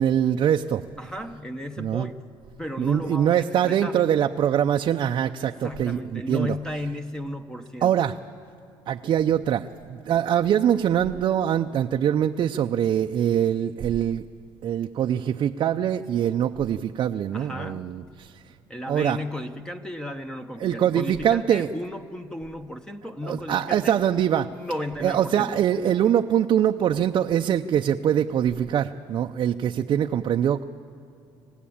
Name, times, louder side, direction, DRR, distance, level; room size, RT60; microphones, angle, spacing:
voice 1, 0.0-0.8 1.8-2.1 2.8-6.5 7.8-8.2 8.9-14.2 14.6-18.3 18.9-19.2 20.6-21.7 23.2-24.5 25.0-30.6, right 9 dB, 50° right, 4 dB, 0.6 m, -23 dB
voice 2, 1.0-2.2 2.6-4.1 5.4-8.1 17.3-17.9 18.7-24.0 24.5-25.6, left 1 dB, 5° left, 6 dB, 1.0 m, -34 dB
27.0 x 16.5 x 8.7 m, 2.7 s
cardioid pair, 110°, 10 cm